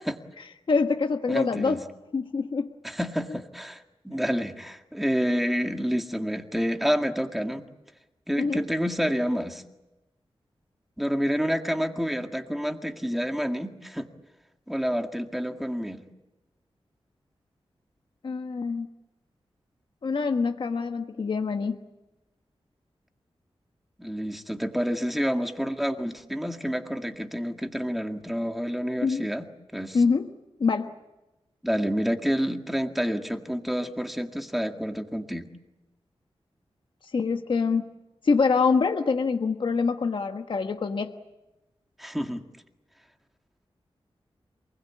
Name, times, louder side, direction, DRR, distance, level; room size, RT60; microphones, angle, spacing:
voice 1, 0.7-1.8 2.1-2.7 8.4-8.6 18.2-18.9 20.0-21.8 29.0-29.2 29.9-30.3 30.6-30.9 37.1-37.9 38.2-41.1, left 4 dB, 55° left, 5 dB, 1.3 m, -25 dB
voice 2, 1.3-1.8 2.8-7.7 8.3-9.6 11.0-14.1 14.7-16.0 24.0-30.0 31.6-35.5 42.0-42.4, equal, ahead, 4 dB, 1.9 m, -28 dB
27.5 x 20.5 x 8.5 m, 1.0 s
wide cardioid pair, 145°, 10 cm